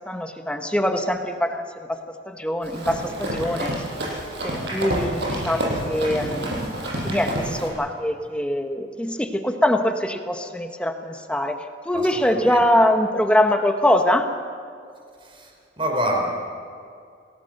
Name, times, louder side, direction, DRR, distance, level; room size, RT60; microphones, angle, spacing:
voice 1, 0.1-1.9 2.3-3.7 4.4-6.7 7.0-11.6 11.9-14.3, left 1 dB, 5° left, 5 dB, 1.2 m, -23 dB
Run, 2.6-7.7, right 1 dB, 60° right, 7.1 m, -28 dB
voice 2, 11.9-12.6 15.2-16.3, equal, 30° right, 1 dB, 4.7 m, -27 dB
27.5 x 18.5 x 6.7 m, 2.4 s
head